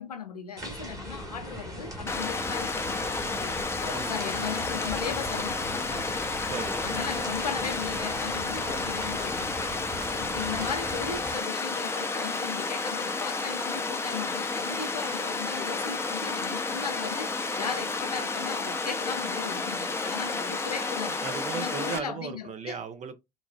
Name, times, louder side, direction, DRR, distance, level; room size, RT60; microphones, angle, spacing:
voice 1, 0.0-6.1 6.8-9.6 10.2-21.2 21.5-22.8, left 6 dB, 85° left, 0.5 m, -37 dB
sound 1, 0.6-11.4, equal, 20° right, 1.4 m, -40 dB
Water, 2.1-22.0, left 3 dB, 15° left, 0.6 m, -31 dB
voice 2, 6.5-6.8 21.2-23.2, right 6 dB, 40° right, 0.8 m, -36 dB
3.7 x 2.3 x 2.2 m
figure-of-eight pair, 60°, 19 cm